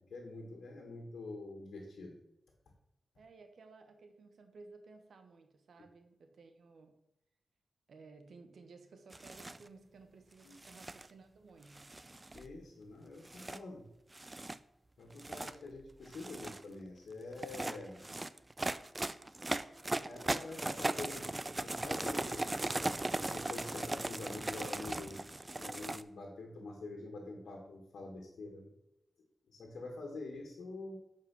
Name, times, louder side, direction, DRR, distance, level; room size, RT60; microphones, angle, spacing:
voice 1, 0.0-2.2 10.4-10.6 12.3-13.9 15.0-18.0 20.0-22.6 23.1-28.7 29.5-31.0, left 2 dB, 85° left, 1 dB, 1.7 m, -46 dB
voice 2, 3.2-6.9 7.9-11.9, right 3 dB, 80° right, 7 dB, 1.1 m, -57 dB
sound 1, 9.1-9.6 10.5-11.1 11.8-12.5 13.3-13.6 14.1-14.6 15.1-15.6 16.1-16.6 17.3-26.0, right 2 dB, 25° right, 0.4 m, -38 dB
8.4 x 4.9 x 6.2 m, 0.85 s
cardioid pair, 75°, 0 cm